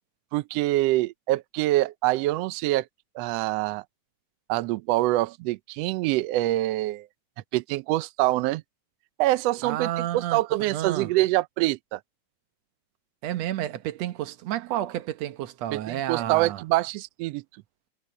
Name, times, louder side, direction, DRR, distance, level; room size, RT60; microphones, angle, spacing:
voice 1, 0.3-2.9 3.1-3.8 4.5-7.1 7.5-8.6 9.2-12.0 15.7-17.4, right 17 dB, 85° right, 1.4 m, -25 dB
voice 2, 9.6-11.1 13.2-16.6, right 12 dB, 70° right, 1.9 m, -31 dB
omnidirectional pair, 3.5 m